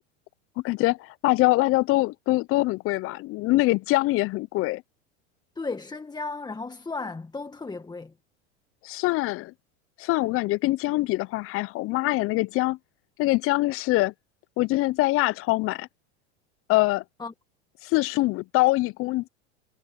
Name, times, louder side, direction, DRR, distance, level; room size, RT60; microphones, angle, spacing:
voice 1, 0.6-4.8 8.8-9.5 10.0-12.8 13.2-14.1 14.6-15.9 16.7-17.0 17.8-19.3, left 20 dB, 40° left, 0.6 m, -24 dB
voice 2, 5.5-8.1 17.2-17.3, left 3 dB, 10° left, 1.7 m, -34 dB
hypercardioid pair, 100°, 35 cm